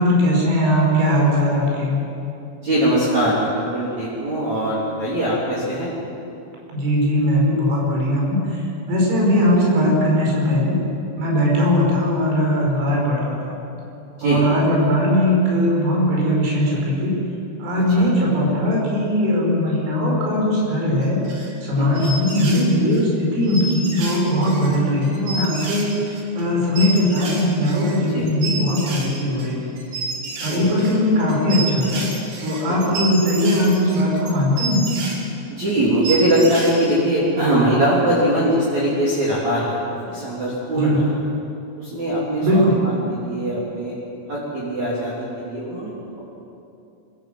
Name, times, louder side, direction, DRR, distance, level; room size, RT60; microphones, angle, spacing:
voice 1, 0.0-2.0 6.7-10.8 11.2-13.6 14.2-17.2 17.6-21.2 21.6-29.7 30.4-32.1 32.4-34.8 40.7-41.0 42.4-42.8, left 1 dB, 85° right, -2 dB, 7.8 m, -19 dB
voice 2, 2.6-5.9 14.2-14.4 18.0-18.1 21.8-22.0 28.1-28.3 30.5-30.7 32.9-33.0 35.5-41.1 41.8-43.9 44.3-46.2, right 1 dB, 40° right, -7 dB, 3.8 m, -21 dB
sound 1, 21.0-21.7 21.9-23.0 23.4-35.2 35.7-35.8 36.0-36.9, right 3 dB, 60° right, 4.6 m, -30 dB
24.0 x 15.5 x 7.9 m, 2.7 s
omnidirectional pair, 5.7 m